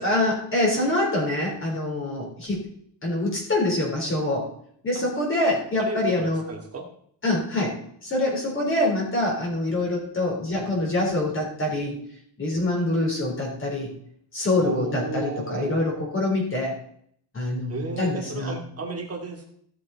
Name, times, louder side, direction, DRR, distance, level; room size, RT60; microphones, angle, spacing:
voice 1, 0.0-2.7 3.0-4.5 4.8-6.4 7.2-7.8 8.0-12.0 12.4-13.9 14.3-16.8 17.3-18.6, left 1 dB, 25° left, -2 dB, 3.9 m, -25 dB
voice 2, 5.8-6.9 14.6-15.9 17.7-19.5, right 3 dB, 30° right, 1 dB, 2.4 m, -33 dB
16.0 x 7.7 x 4.2 m, 0.65 s
cardioid pair, 175°, 45 cm